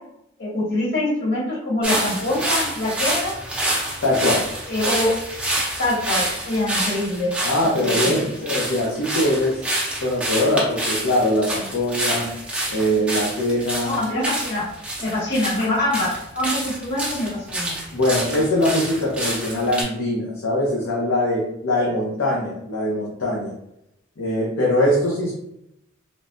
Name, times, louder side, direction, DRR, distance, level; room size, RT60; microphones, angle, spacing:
voice 1, 0.4-3.3 4.7-5.1 5.8-7.3 7.8-8.2 13.8-14.6 15.0-17.7 21.8-21.9, left 1 dB, 55° left, -8 dB, 1.4 m, -24 dB
sound 1, 1.8-19.8, right 1 dB, 5° right, 0.5 m, -27 dB
voice 2, 4.0-4.4 7.4-9.6 10.0-12.3 12.7-14.0 17.9-23.5 24.2-25.3, left 1 dB, 85° left, -4 dB, 0.6 m, -22 dB
3.1 x 2.1 x 2.5 m, 0.82 s
head